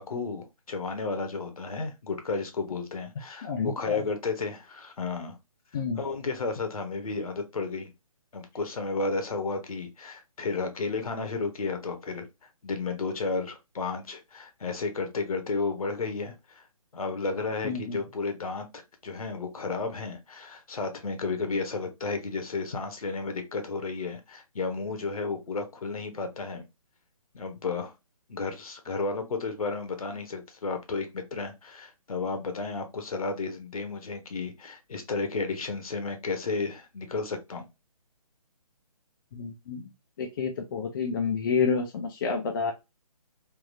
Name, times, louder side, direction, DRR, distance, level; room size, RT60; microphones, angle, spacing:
voice 1, 0.0-5.4 5.7-7.9 8.3-12.3 12.6-16.6 16.9-26.7 27.3-27.9 28.3-37.7, left 4 dB, 70° left, 1.1 m, -32 dB
voice 2, 3.4-4.0 5.7-6.0 17.6-18.0 39.3-39.9 40.2-42.7, left 5 dB, 35° left, 0.5 m, -29 dB
3.5 x 2.6 x 2.6 m
figure-of-eight pair, 145°, 19 cm